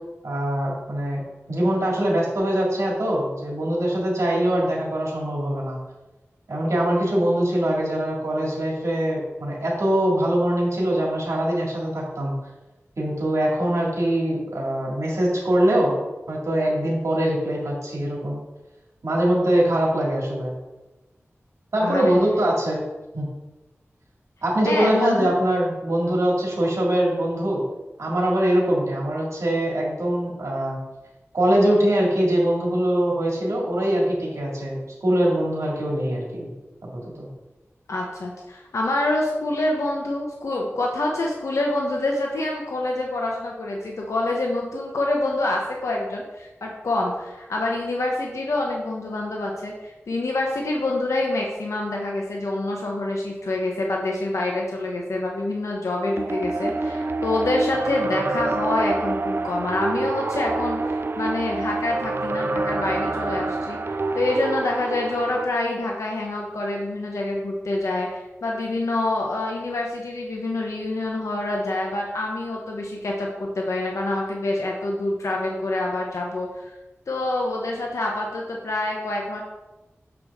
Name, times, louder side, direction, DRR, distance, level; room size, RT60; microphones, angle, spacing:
voice 1, 0.2-1.2 1.5-5.8 6.5-12.3 13.0-18.4 19.0-20.6 21.7-22.8 23.1-23.3 24.4-27.6 28.0-30.8 31.3-36.5 36.8-37.3, right 1 dB, 85° right, -3 dB, 2.0 m, -23 dB
voice 2, 21.8-22.1 24.6-25.3 37.9-76.7 77.1-79.4, left 2 dB, 85° left, -1 dB, 0.8 m, -26 dB
sound 1, 56.2-65.5, right 3 dB, 50° right, 0.4 m, -27 dB
7.1 x 4.8 x 3.6 m, 1.1 s
wide cardioid pair, 50°, 5 cm